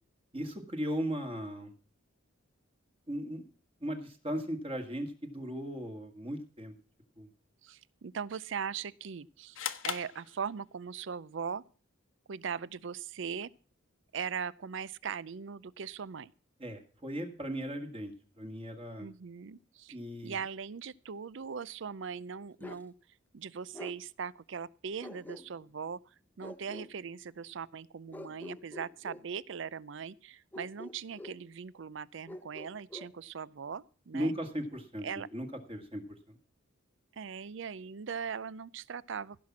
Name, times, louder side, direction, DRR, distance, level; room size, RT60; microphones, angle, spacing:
voice 1, 0.3-1.7 3.1-3.4 3.8-6.7 7.2-7.3 16.6-19.1 19.9-20.4 34.1-35.1 35.3-36.4, equal, 30° right, 1.9 m, -37 dB
voice 2, 7.6-9.6 9.8-11.6 12.3-13.5 14.1-16.3 19.0-20.0 20.2-22.9 23.3-26.0 26.4-34.3 35.0-35.3 37.1-39.4, right 6 dB, 65° right, 0.5 m, -40 dB
sound 1, 9.5-11.0, left 8 dB, 85° left, 1.1 m, -39 dB
Bark, 22.6-22.9 23.7-24.0 25.0-25.7 26.4-26.9 28.1-29.3 30.5-31.4 32.3-33.1, left 1 dB, 10° left, 0.7 m, -46 dB
16.5 x 5.9 x 7.3 m
head